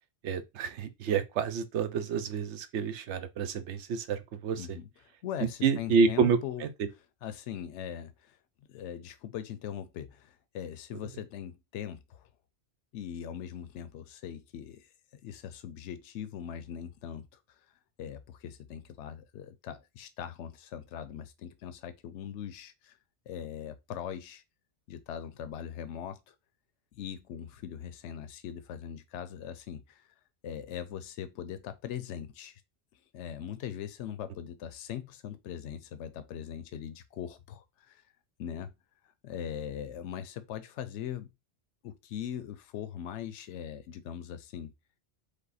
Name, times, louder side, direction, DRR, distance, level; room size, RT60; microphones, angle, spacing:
voice 1, 0.2-4.7 5.4-6.7, right 6 dB, 90° right, 1.0 m, -29 dB
voice 2, 4.6-4.9 5.2-6.6 7.2-8.4 8.7-12.3 12.9-17.3 18.0-23.0 23.3-24.4 24.9-26.3 26.9-30.1 30.4-32.6 32.9-38.0 38.4-38.7 39.2-41.3 41.8-44.7, left 9 dB, 85° left, 0.9 m, -40 dB
5.1 x 2.1 x 4.0 m
omnidirectional pair, 1.2 m